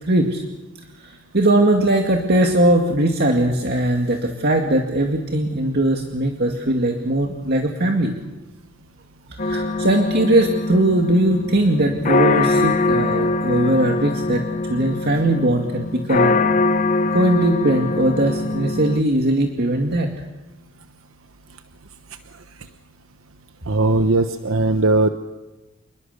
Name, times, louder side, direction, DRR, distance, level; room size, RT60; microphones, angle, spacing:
voice 1, 0.0-0.4 1.0-8.1 9.4-14.4 14.7-16.3 17.1-20.1, right 1 dB, 55° right, 3 dB, 2.2 m, -19 dB
sound 1, 9.4-19.0, left 3 dB, 40° left, 0.9 m, -22 dB
voice 2, 23.7-25.1, right 2 dB, 85° right, 8 dB, 1.0 m, -18 dB
28.0 x 21.5 x 6.8 m, 1.1 s
head